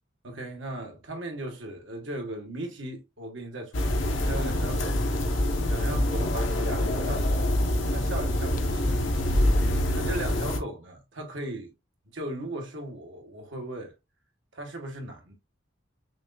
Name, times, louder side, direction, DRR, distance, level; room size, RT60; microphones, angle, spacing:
voice 1, 0.2-5.0 5.7-7.3 7.9-9.0 9.9-11.7 12.1-13.9 14.5-15.3, right 1 dB, 70° right, 1.3 m, -37 dB
sound 1, 3.7-10.6, left 1 dB, 70° left, 1.0 m, -25 dB
sound 2, 5.0-7.8 8.1-9.8, left 2 dB, 45° left, 0.6 m, -42 dB
6.0 x 2.5 x 2.3 m
head